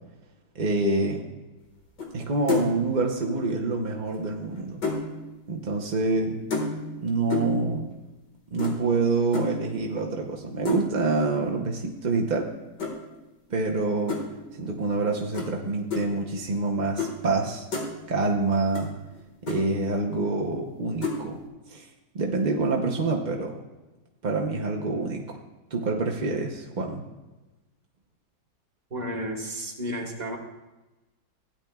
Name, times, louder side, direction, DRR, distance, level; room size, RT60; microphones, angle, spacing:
voice 1, 0.5-1.2 2.1-4.8 5.5-6.4 7.0-7.9 8.5-12.5 13.5-14.2 14.6-17.6 18.1-18.9 19.4-21.4 21.7-21.9 22.1-23.6 24.2-25.4 25.7-27.0, right 3 dB, 50° right, 0 dB, 0.5 m, -26 dB
sound 1, 2.0-2.2 2.5-2.8 4.1-5.1 6.5-7.0 7.3-7.6 8.6-8.8 9.3-9.6 10.7-11.0 12.8-12.9 14.1-14.2 15.3-15.5 15.9-16.0 17.0-17.1 17.4-17.9 18.7-18.9 19.1-19.2 19.5-19.6 21.0-21.2, left 4 dB, 65° left, 2.3 m, -29 dB
voice 2, 28.9-30.4, equal, 25° right, 0 dB, 1.3 m, -32 dB
16.0 x 10.0 x 2.3 m, 1.1 s
omnidirectional pair, 1.9 m